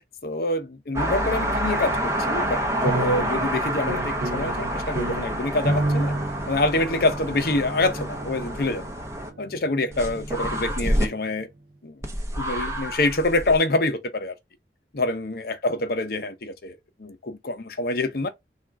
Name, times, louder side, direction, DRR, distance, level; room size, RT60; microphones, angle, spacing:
voice 1, 0.2-6.1 6.5-8.8 9.4-11.5 11.8-12.0 12.4-14.3 14.9-18.3, left 2 dB, 55° left, 0.7 m, -26 dB
sound 1, 0.9-9.3 9.9-11.1 12.0-13.5, equal, 15° right, 0.7 m, -28 dB
sound 2, 2.8-11.2, right 2 dB, 60° right, 0.6 m, -31 dB
3.6 x 2.4 x 4.5 m
head